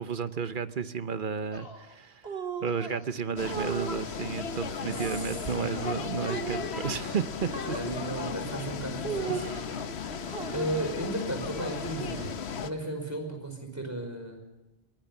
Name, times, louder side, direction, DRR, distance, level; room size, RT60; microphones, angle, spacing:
voice 1, 0.0-2.3 2.6-7.8 9.3-9.6, right 6 dB, 55° right, 12 dB, 1.0 m, -33 dB
sound 1, 1.5-1.9 2.7-3.1 3.6-3.9 4.7-5.3 5.7-6.1 7.0-7.3 8.0-8.4 9.2-9.9 10.3-10.7 11.4-11.9, left 2 dB, 65° left, 1.9 m, -45 dB
sound 2, 2.2-2.8 3.4-3.9 4.7-5.5 6.3-6.7 7.5-7.9 9.0-9.6 10.3-10.9 11.6-12.4, right 5 dB, 70° right, 2.1 m, -37 dB
sound 3, 3.4-12.7, left 6 dB, 90° left, 1.3 m, -36 dB
voice 2, 7.7-9.6 9.8-12.3 12.6-14.4, right 1 dB, 15° right, 4 dB, 5.1 m, -35 dB
22.5 x 18.0 x 7.0 m, 1.0 s
omnidirectional pair, 1.1 m